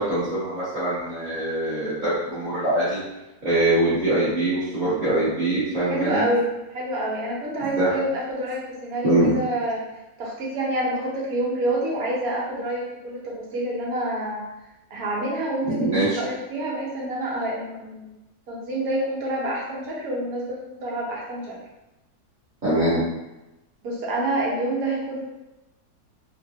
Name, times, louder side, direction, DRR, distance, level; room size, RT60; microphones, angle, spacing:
voice 1, 0.0-3.0 3.4-6.2 7.8-7.9 9.0-9.3 15.6-16.2 22.6-23.0, right 1 dB, 35° right, -14 dB, 1.0 m, -23 dB
voice 2, 5.9-9.8 10.2-14.4 14.9-18.1 18.5-21.5 23.8-25.2, right 1 dB, 65° right, -4 dB, 1.3 m, -27 dB
3.4 x 2.2 x 2.7 m, 0.98 s
omnidirectional pair, 1.7 m